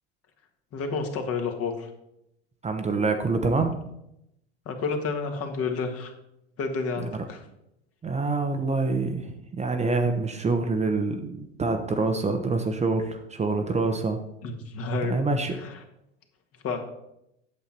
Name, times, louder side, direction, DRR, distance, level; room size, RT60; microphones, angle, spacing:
voice 1, 0.7-1.9 4.6-6.1 6.6-7.4 14.4-15.1 15.6-15.7 16.6-16.8, left 4 dB, 40° left, 4 dB, 1.7 m, -30 dB
voice 2, 2.6-3.8 8.0-14.2 15.1-15.6, right 3 dB, 20° right, 5 dB, 0.9 m, -26 dB
8.5 x 7.0 x 4.4 m, 0.82 s
hypercardioid pair, 80°, 35 cm